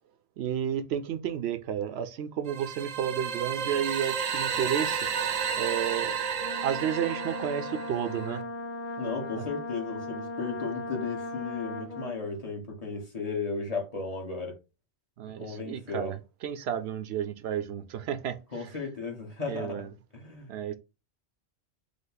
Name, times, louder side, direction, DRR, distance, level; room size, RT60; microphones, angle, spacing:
voice 1, 0.4-5.0 5.6-6.2 6.6-8.4 9.4-9.5 15.2-18.4 19.5-19.9 20.5-20.8, right 9 dB, 75° right, 0.9 m, -32 dB
sound 1, 2.5-8.4, right 7 dB, 50° right, 0.5 m, -32 dB
Brass instrument, 6.4-12.2, left 1 dB, 55° left, 0.8 m, -37 dB
voice 2, 9.0-14.6 15.4-16.1 18.5-20.8, left 4 dB, 35° left, 1.2 m, -35 dB
5.1 x 2.1 x 3.9 m
omnidirectional pair, 1.1 m